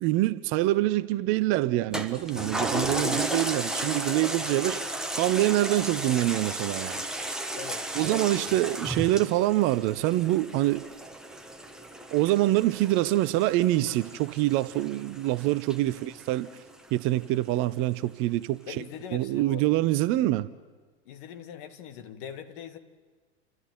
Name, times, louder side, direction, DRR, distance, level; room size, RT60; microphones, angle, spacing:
voice 1, 0.0-7.0 8.0-10.9 12.1-16.5 16.9-18.8 19.1-20.5, right 16 dB, 35° right, 0.7 m, -25 dB
Toilet flush, 1.9-16.7 17.2-17.3, right 1 dB, ahead, 1.4 m, -34 dB
voice 2, 7.5-8.3 15.8-16.0 18.7-19.8 21.1-22.8, left 8 dB, 50° left, 1.8 m, -42 dB
30.0 x 12.5 x 9.2 m
figure-of-eight pair, 90°, 34 cm